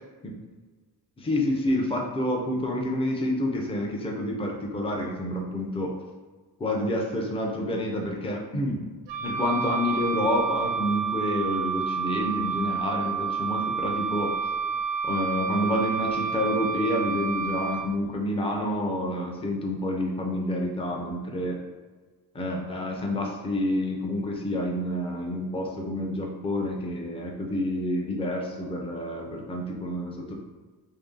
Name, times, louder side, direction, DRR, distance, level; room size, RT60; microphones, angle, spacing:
voice 1, 1.2-6.0 6.6-8.8 9.2-14.3 15.0-21.6 22.3-30.3, left 1 dB, 15° left, 0 dB, 0.5 m, -28 dB
Wind instrument woodwind instrument, 9.1-17.9, right 6 dB, 90° right, 0.5 m, -29 dB
3.2 x 2.7 x 3.7 m, 1.4 s
wide cardioid pair, 145°, 40 cm